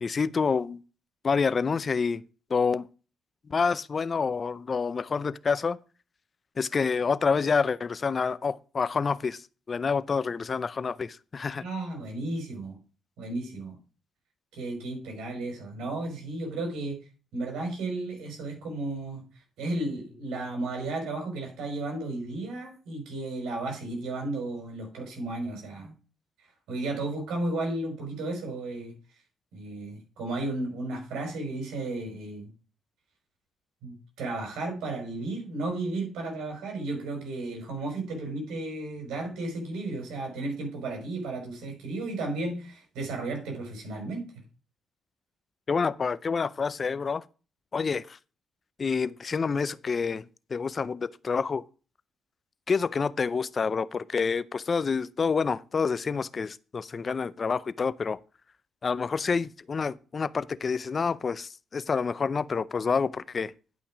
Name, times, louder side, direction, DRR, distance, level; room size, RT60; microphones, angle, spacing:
voice 1, 0.0-0.8 1.2-2.2 2.5-2.9 3.5-5.8 6.6-9.4 9.7-11.6 45.7-47.2 47.7-48.2 48.8-50.2 50.5-51.6 52.7-58.2 58.8-63.5, left 5 dB, 40° left, 0.5 m, -28 dB
voice 2, 11.6-12.8 13.2-13.8 14.5-17.0 17.3-19.2 19.6-25.9 26.7-28.9 29.5-32.5 33.8-44.3, right 2 dB, 85° right, 5.3 m, -34 dB
11.0 x 5.9 x 4.9 m
cardioid pair, 90°, 0 cm